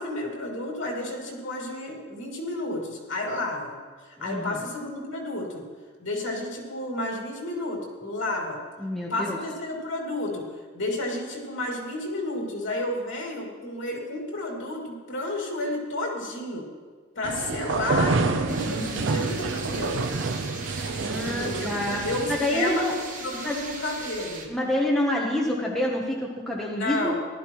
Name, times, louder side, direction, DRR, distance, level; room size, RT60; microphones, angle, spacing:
voice 1, 0.0-3.7 4.0-5.6 6.0-8.6 9.1-10.5 10.7-16.7 17.1-20.1 20.6-20.9 21.2-21.7 22.0-22.8 23.2-24.5 26.7-27.1, left 2 dB, 70° left, -2 dB, 2.6 m, -31 dB
voice 2, 4.2-4.6 8.8-9.4 18.7-19.3 20.9-22.0 22.3-22.9 23.4-23.6 24.5-27.1, left 1 dB, ahead, -3 dB, 1.0 m, -27 dB
sound 1, 17.2-22.4, right 3 dB, 70° right, 0.5 m, -28 dB
sound 2, 18.5-24.5, right 4 dB, 40° right, 1.2 m, -39 dB
15.0 x 12.0 x 3.0 m, 1.5 s
head